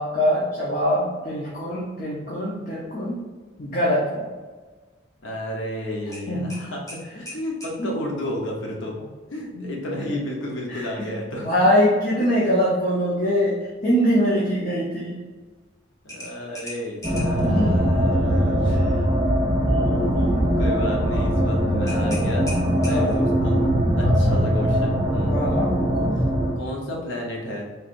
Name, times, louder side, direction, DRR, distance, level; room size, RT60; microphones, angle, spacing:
voice 1, 0.0-3.2 3.6-4.3 6.3-6.6 7.8-7.9 10.7-11.1 11.4-13.6 13.8-15.2 17.4-17.7 19.6-20.3 22.8-23.1 24.0-24.4 25.3-26.1, equal, 45° left, -6 dB, 0.8 m, -23 dB
voice 2, 5.2-9.0 9.3-11.7 12.4-12.6 14.5-14.6 16.0-18.8 20.3-22.5 22.8-23.7 23.9-25.4 26.2-26.3 26.5-27.7, left 1 dB, 75° left, -1 dB, 0.9 m, -32 dB
sound 1, 6.1-7.8 10.4-10.6 11.1-11.2 16.1-17.5 21.9-23.3, left 1 dB, 15° left, 0.8 m, -38 dB
sound 2, 17.0-26.5, equal, 20° right, 0.7 m, -21 dB
4.5 x 3.3 x 2.5 m, 1.3 s
head